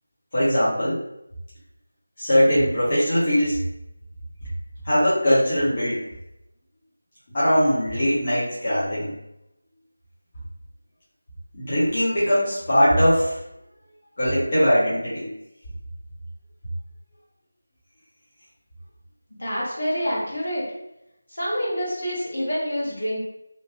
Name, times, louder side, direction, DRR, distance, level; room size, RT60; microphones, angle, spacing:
voice 1, 0.3-1.0 2.2-3.6 4.8-6.0 7.3-9.1 11.5-13.4 14.2-15.3, equal, 35° left, -11 dB, 1.0 m, -20 dB
voice 2, 19.4-20.7 21.3-23.2, equal, 55° left, -5 dB, 1.2 m, -27 dB
2.9 x 2.5 x 2.8 m, 0.86 s
figure-of-eight pair, 165°, 0 cm